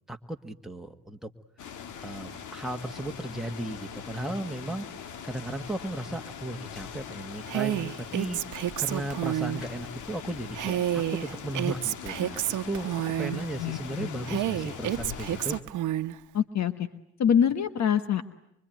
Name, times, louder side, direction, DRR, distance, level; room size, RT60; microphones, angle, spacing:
voice 1, 0.1-1.3 2.0-4.9 5.2-8.4 8.8-15.6, right 1 dB, ahead, 3 dB, 1.7 m, -35 dB
sound 1, 1.6-15.6, left 7 dB, 80° left, 1.7 m, -42 dB
Female speech woman speaking, 7.5-9.6 10.5-13.4 14.3-16.2, right 13 dB, 80° right, 1.0 m, -29 dB
voice 2, 13.6-14.1 16.3-16.7 17.2-18.2, left 8 dB, 65° left, 11 dB, 1.4 m, -24 dB
25.0 x 24.5 x 9.2 m, 0.76 s
cardioid pair, 90°, 30 cm